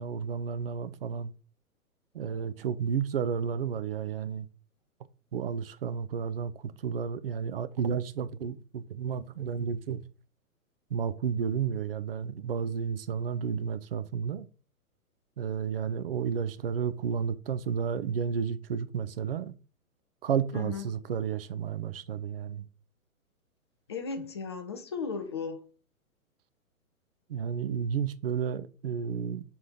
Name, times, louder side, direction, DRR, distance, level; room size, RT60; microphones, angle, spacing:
voice 1, 0.0-1.3 2.1-4.5 5.3-10.0 10.9-14.5 15.4-19.5 20.2-22.7 24.2-24.3 27.3-29.4, right 7 dB, 40° right, 0.6 m, -32 dB
voice 2, 20.5-20.8 23.9-25.7, left 5 dB, 20° left, 0.4 m, -36 dB
4.7 x 4.3 x 5.3 m
figure-of-eight pair, 120°, 43 cm